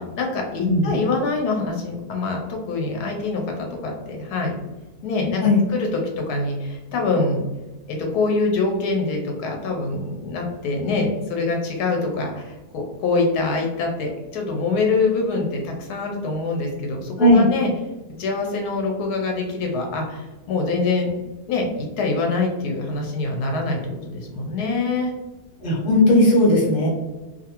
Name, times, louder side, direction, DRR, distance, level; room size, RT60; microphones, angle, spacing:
voice 1, 0.0-4.5 5.0-7.4 7.9-17.7 18.2-21.1 21.5-25.1, left 3 dB, 85° left, 1 dB, 1.1 m, -25 dB
voice 2, 25.6-26.9, left 1 dB, 40° left, -4 dB, 0.9 m, -16 dB
2.6 x 2.5 x 2.8 m, 1.2 s
omnidirectional pair, 1.6 m